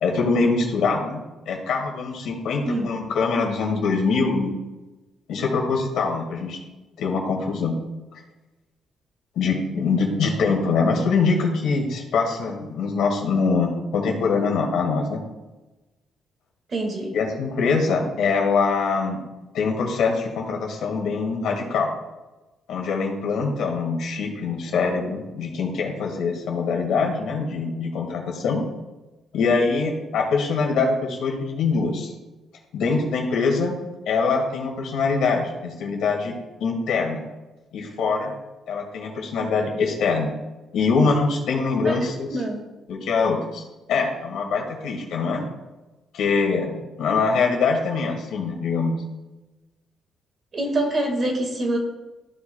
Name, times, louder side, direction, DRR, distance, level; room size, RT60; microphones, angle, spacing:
voice 1, 0.0-4.5 5.3-6.6 7.0-7.8 9.4-15.2 17.1-19.2 19.5-21.9 22.7-28.6 29.3-32.1 32.7-33.8 34.1-36.3 36.6-37.2 37.7-38.3 38.7-40.3 40.7-42.3 42.9-45.4 46.1-49.0, left 4 dB, 80° left, 1 dB, 2.0 m, -23 dB
voice 2, 2.6-3.0 16.7-17.2 41.8-42.0 42.3-42.6 50.5-51.8, right 1 dB, 45° right, 2 dB, 1.9 m, -25 dB
14.5 x 5.0 x 2.3 m, 1.1 s
cardioid pair, 90°, 0 cm